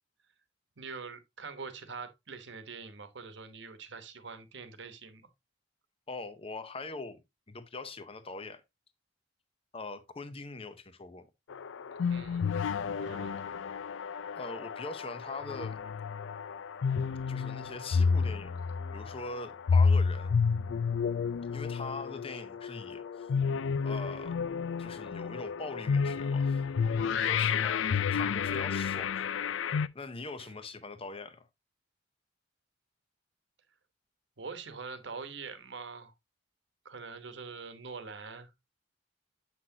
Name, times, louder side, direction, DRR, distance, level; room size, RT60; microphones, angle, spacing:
voice 1, 0.8-5.3 12.1-12.5 13.0-13.4 30.4-30.5 34.4-36.1 36.8-38.5, right 4 dB, 65° right, 1.1 m, -44 dB
voice 2, 6.1-7.2 7.5-8.6 9.7-11.3 14.4-15.8 17.3-18.5 18.9-20.3 21.5-23.3 23.8-24.4 24.8-26.6 27.0-29.2 29.9-31.5, left 3 dB, 30° left, 0.7 m, -42 dB
sound 1, 11.5-29.9, left 5 dB, 70° left, 0.4 m, -30 dB
7.7 x 5.9 x 2.7 m
head